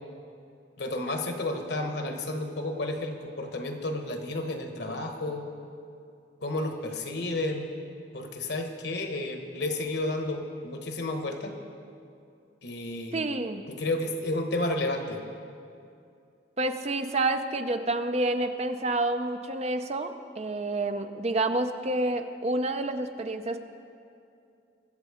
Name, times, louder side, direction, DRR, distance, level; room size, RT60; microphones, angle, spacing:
voice 1, 0.8-5.5 6.4-7.7 8.1-11.5 12.6-13.2 13.7-15.2, left 2 dB, 60° left, 4 dB, 1.3 m, -31 dB
voice 2, 13.1-13.6 16.6-23.6, right 2 dB, 35° right, 8 dB, 0.5 m, -29 dB
22.0 x 7.5 x 5.0 m, 2.5 s
head